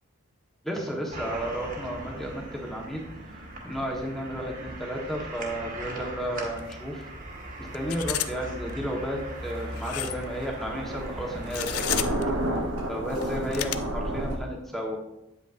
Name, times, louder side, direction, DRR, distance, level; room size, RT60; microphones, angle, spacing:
voice 1, 0.6-3.0 3.3-7.0 7.6-12.4 12.9-15.0, equal, ahead, -1 dB, 1.3 m, -33 dB
sound 1, 1.1-11.9, right 1 dB, 40° right, 1.5 m, -39 dB
sound 2, 6.6-6.7 7.0-7.1 7.7-8.3 8.7-8.8 9.7-10.2 11.4-12.2 13.1-13.7, left 13 dB, 90° left, 0.4 m, -31 dB
Thunder, 9.4-14.4, right 1 dB, 85° right, 1.1 m, -31 dB
9.0 x 8.3 x 2.6 m, 0.87 s
head